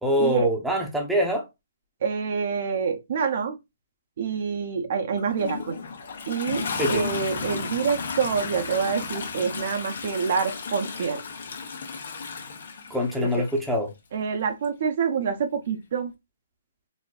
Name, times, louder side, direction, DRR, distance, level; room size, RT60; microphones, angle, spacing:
voice 1, 0.0-1.5 6.8-7.1 12.9-13.9, equal, 5° right, 0.7 m, -24 dB
voice 2, 2.0-3.6 4.2-5.8 6.3-11.2 13.2-13.3 14.1-16.1, right 6 dB, 50° right, 0.6 m, -27 dB
Toilet flush, 5.2-13.6 14.6-14.7, left 5 dB, 65° left, 1.0 m, -34 dB
4.1 x 2.6 x 2.3 m
hypercardioid pair, 165°, 0 cm